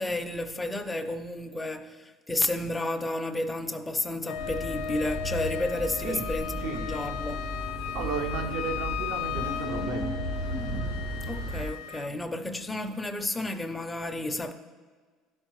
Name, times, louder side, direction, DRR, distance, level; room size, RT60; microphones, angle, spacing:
voice 1, 0.0-7.4 11.2-14.5, left 2 dB, 10° left, 0.4 m, -32 dB
Wind instrument woodwind instrument, 4.2-12.1, left 11 dB, 80° left, 0.3 m, -36 dB
sound 1, 4.3-11.7, right 1 dB, 90° right, 1.8 m, -35 dB
voice 2, 7.9-10.1, right 5 dB, 70° right, 0.6 m, -33 dB
sound 2, 9.3-11.3, equal, 50° right, 0.9 m, -38 dB
11.5 x 4.4 x 3.1 m
cardioid pair, 160°, 0 cm